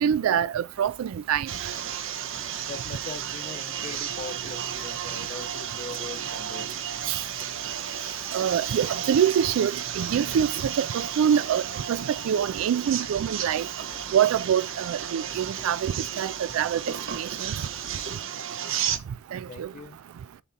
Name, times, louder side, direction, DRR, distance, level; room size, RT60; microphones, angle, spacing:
voice 1, 0.0-1.5 7.1-7.2 8.3-11.6 11.9-13.7 14.1-16.8 17.2-17.5 19.3-19.7, right 8 dB, 85° right, 0.3 m, -25 dB
sound 1, 0.7-18.2, right 3 dB, 30° right, 0.7 m, -52 dB
sound 2, 1.5-19.0, right 9 dB, 65° right, 0.7 m, -33 dB
voice 2, 2.7-6.7 19.5-20.0, left 4 dB, 35° left, 0.5 m, -41 dB
6.9 x 2.8 x 5.4 m
head